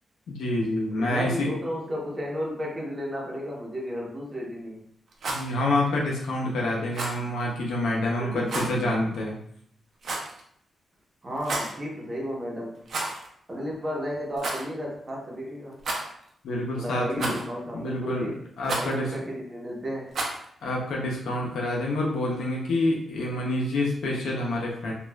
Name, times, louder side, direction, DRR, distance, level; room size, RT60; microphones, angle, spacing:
voice 1, 0.3-1.5 5.3-9.4 16.4-17.4 17.7-19.1 20.6-24.9, left 1 dB, 90° left, -2 dB, 0.6 m, -27 dB
voice 2, 0.9-4.9 8.1-8.9 11.2-12.8 13.5-15.8 16.8-18.4 18.8-20.1, equal, 30° right, -3 dB, 0.9 m, -33 dB
Rattle, 5.1-5.5 6.9-7.2 8.5-8.7 10.0-10.4 11.4-11.8 12.9-13.3 13.6-13.7 14.4-14.7 15.8-16.3 17.2-17.6 18.6-18.9 20.1-20.5, right 2 dB, 65° right, 0.5 m, -31 dB
3.0 x 2.3 x 2.2 m, 0.66 s
cardioid pair, 100°, 0 cm